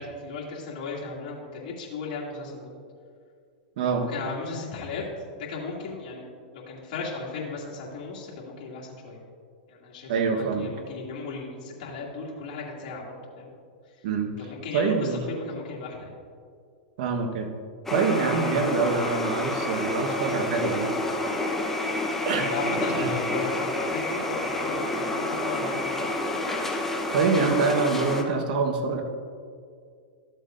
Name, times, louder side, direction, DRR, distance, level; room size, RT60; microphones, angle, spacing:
voice 1, 0.0-2.7 4.1-5.0 5.5-6.3 6.5-9.2 9.7-13.5 14.4-16.1 22.5-26.1, left 3 dB, 55° left, -5 dB, 2.5 m, -36 dB
voice 2, 10.1-10.7 14.0-14.3 14.7-15.2 17.0-17.5 17.9-21.0 22.2-23.1 27.1-29.0, right 5 dB, 65° right, 4 dB, 1.2 m, -25 dB
sound 1, 17.9-28.2, left 2 dB, 5° left, 0.9 m, -29 dB
13.5 x 7.7 x 2.6 m, 2.2 s
hypercardioid pair, 120°, 5 cm